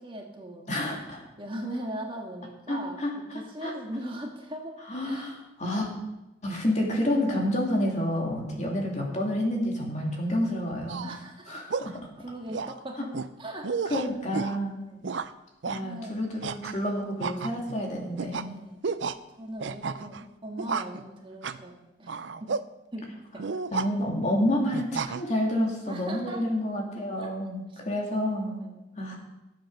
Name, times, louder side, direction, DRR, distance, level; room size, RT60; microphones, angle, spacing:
voice 1, 0.0-0.7 1.4-3.0 3.3-4.8 5.0-5.3 8.5-8.7 11.0-11.5 12.2-13.1 13.4-14.0 14.8-15.0 15.7-16.2 18.4-18.8 19.4-22.1 22.4-22.5 22.9-23.4 25.9-26.4 27.2-27.3, right 1 dB, 30° right, 1 dB, 1.7 m, -39 dB
voice 2, 0.7-1.2 2.7-3.7 4.9-5.9 6.4-11.1 11.5-12.0 13.0-13.1 13.9-14.8 15.7-18.5 23.7-28.7 29.0-29.1, left 1 dB, 40° left, 0 dB, 2.7 m, -29 dB
sound 1, 10.9-11.2 11.7-12.0 12.5-12.8 13.1-13.3 13.6-14.6 15.0-15.3 15.6-15.8 16.4-16.8 17.2-17.8 18.2-18.5 18.8-19.2 19.6-20.2 20.6-21.0 21.4-21.6 22.1-22.6 23.4-23.9 24.7-25.2, right 5 dB, 85° right, 0.6 m, -32 dB
14.0 x 7.7 x 6.6 m, 0.98 s
head